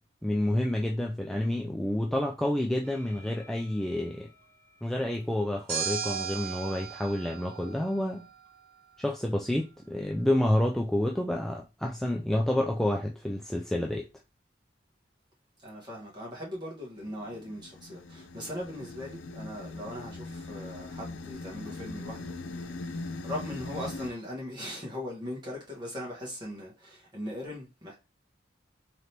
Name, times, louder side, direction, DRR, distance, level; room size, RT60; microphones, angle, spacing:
voice 1, 0.2-4.3 4.8-8.2 9.0-14.0, left 1 dB, ahead, 0.3 m, -29 dB
sound 1, 2.9-3.8 5.7-8.3, right 7 dB, 60° right, 1.0 m, -37 dB
voice 2, 15.6-28.0, left 1 dB, 25° right, 1.5 m, -40 dB
sound 2, 17.0-24.1, left 2 dB, 90° left, 0.5 m, -40 dB
3.8 x 3.3 x 2.9 m
head